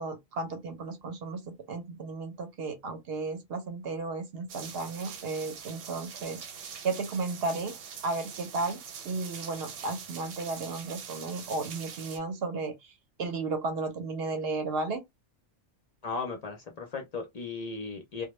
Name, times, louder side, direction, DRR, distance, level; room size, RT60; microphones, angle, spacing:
voice 1, 0.0-6.4 6.8-7.8 8.0-12.9 13.2-15.0, right 3 dB, 65° right, 0.7 m, -34 dB
sound 1, 4.5-12.2, right 7 dB, 90° right, 1.0 m, -44 dB
voice 2, 16.0-18.3, left 4 dB, 50° left, 0.5 m, -36 dB
2.1 x 2.0 x 3.0 m
omnidirectional pair, 1.2 m